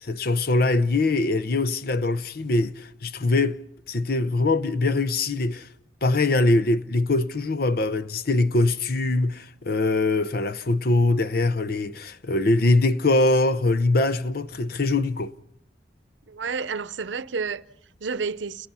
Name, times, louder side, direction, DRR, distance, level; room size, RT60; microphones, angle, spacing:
voice 1, 0.0-3.6 3.9-5.7 6.0-15.3, left 2 dB, 55° left, 0.8 m, -22 dB
voice 2, 16.3-18.7, right 5 dB, 85° right, 0.7 m, -31 dB
29.5 x 18.0 x 5.7 m
head